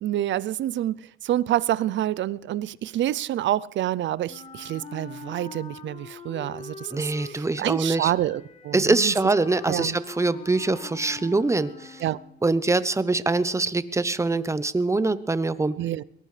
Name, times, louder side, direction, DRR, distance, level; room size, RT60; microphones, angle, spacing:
voice 1, 0.0-1.0 1.2-9.1 9.7-9.9 12.0-12.2 15.8-16.0, right 13 dB, 70° right, 0.5 m, -27 dB
Wind instrument woodwind instrument, 4.3-12.6, left 4 dB, 35° left, 3.6 m, -43 dB
voice 2, 6.9-8.1 8.7-12.0 12.4-15.7, right 3 dB, 15° right, 0.8 m, -24 dB
22.5 x 18.5 x 3.3 m
cardioid pair, 90°, 20 cm